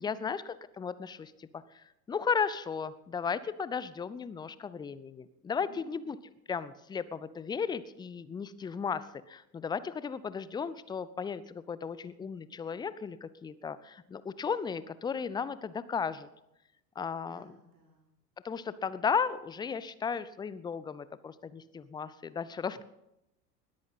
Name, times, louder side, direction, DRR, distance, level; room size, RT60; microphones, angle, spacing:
voice 1, 0.0-6.2 6.5-16.3 17.0-17.6 18.4-22.8, left 6 dB, 10° left, 17 dB, 0.5 m, -35 dB
voice 2, 5.6-6.0 17.3-18.1, right 4 dB, 45° right, -1 dB, 3.8 m, -58 dB
20.0 x 13.5 x 4.1 m, 0.87 s
figure-of-eight pair, 80°, 49 cm